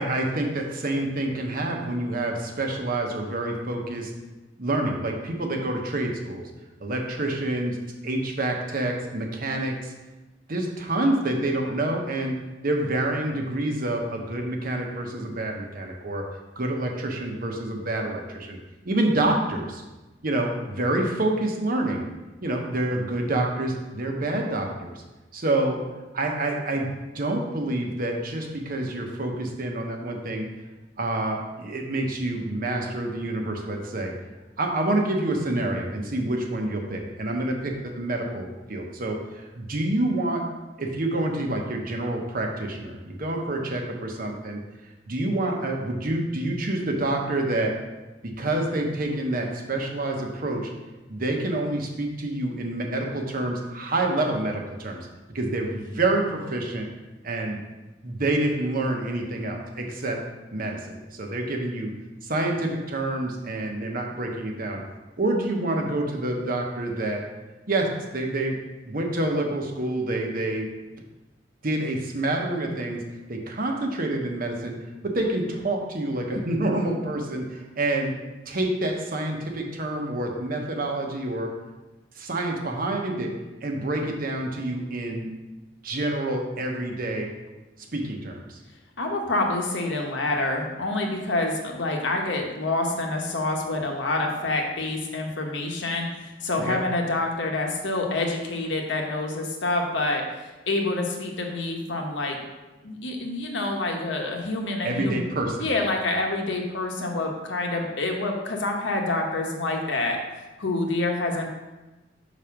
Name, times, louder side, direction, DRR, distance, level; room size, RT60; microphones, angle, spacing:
voice 1, 0.0-4.1 4.6-6.5 6.8-7.8 8.0-9.9 10.5-12.4 12.6-16.2 16.6-18.6 18.8-19.8 20.2-22.0 22.4-24.9 25.3-25.8 26.1-26.9 27.1-30.5 31.0-34.1 34.6-40.4 40.8-44.6 45.1-47.7 48.2-50.7 51.1-55.1 55.3-56.9 57.2-57.6 58.0-60.2 60.5-61.9 62.2-64.8 65.2-67.2 67.7-68.6 68.8-70.7 71.6-73.0 73.3-74.7 75.1-78.1 78.5-81.5 82.2-83.3 83.6-85.3 85.8-87.3 87.9-88.6 96.6-96.8 104.8-105.7, right 2 dB, 50° right, 2 dB, 1.0 m, -27 dB
voice 2, 89.0-100.2 100.7-102.4 102.8-105.2 105.6-111.5, left 2 dB, 75° left, 1 dB, 1.1 m, -27 dB
5.1 x 4.1 x 5.9 m, 1.1 s
head